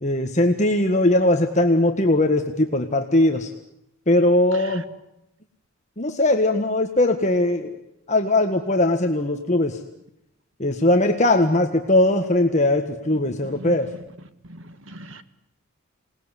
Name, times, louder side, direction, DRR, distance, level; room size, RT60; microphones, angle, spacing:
voice 1, 0.0-3.5 4.1-4.8 6.0-7.7 8.1-9.8 10.6-13.9, left 1 dB, 35° left, 4 dB, 1.6 m, -20 dB
voice 2, 13.4-13.8 14.5-15.2, right 1 dB, 60° right, 11 dB, 1.8 m, -39 dB
27.0 x 19.5 x 10.0 m, 0.84 s
head